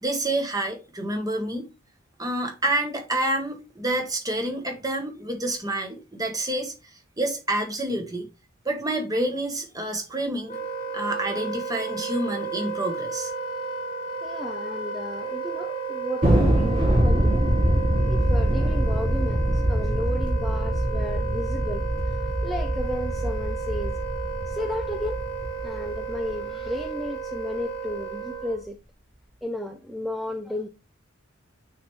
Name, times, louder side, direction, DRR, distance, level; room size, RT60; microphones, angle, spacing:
voice 1, 0.0-1.7 2.2-6.7 7.2-8.3 8.6-10.6 10.9-13.3, right 1 dB, 20° right, 1.1 m, -28 dB
Wind instrument woodwind instrument, 10.5-28.7, right 5 dB, 25° left, 1.1 m, -33 dB
voice 2, 14.2-17.3 18.0-24.0 24.5-25.2 25.6-28.8 29.4-30.7, left 1 dB, ahead, 0.3 m, -33 dB
Thunder, 16.2-26.9, equal, 40° right, 3.9 m, -24 dB
9.0 x 3.4 x 3.1 m
head